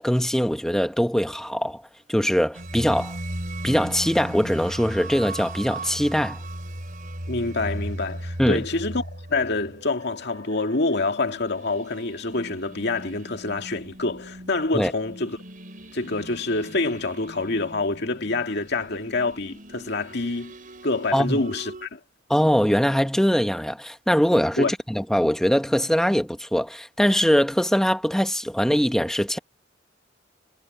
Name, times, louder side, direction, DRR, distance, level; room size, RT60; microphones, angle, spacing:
voice 1, 0.0-1.8 2.1-3.2 3.6-6.4 8.4-8.7 14.7-14.9 21.1-21.4 22.3-29.4, equal, 5° left, 1.4 m, -22 dB
sound 1, 2.5-21.9, right 1 dB, 45° right, 4.8 m, -38 dB
voice 2, 7.3-9.0 9.3-15.4 15.9-20.5 20.8-22.0 24.6-24.7, left 3 dB, 60° left, 2.2 m, -26 dB
head